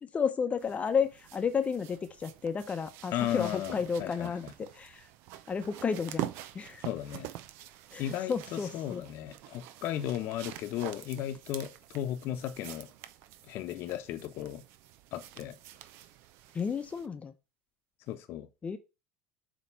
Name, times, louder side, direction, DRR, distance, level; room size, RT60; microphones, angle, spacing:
voice 1, 0.0-5.1 5.5-6.8 7.9-9.0 16.5-17.3 18.6-18.8, left 6 dB, 25° left, 0.9 m, -32 dB
sound 1, 0.6-17.1 18.1-18.2, right 14 dB, 60° right, 0.6 m, -46 dB
voice 2, 3.1-4.5 6.8-7.3 8.0-12.9 13.5-14.6 15.1-15.5 18.1-18.5, left 12 dB, 55° left, 1.0 m, -35 dB
7.5 x 3.2 x 5.5 m
hypercardioid pair, 75°, 5 cm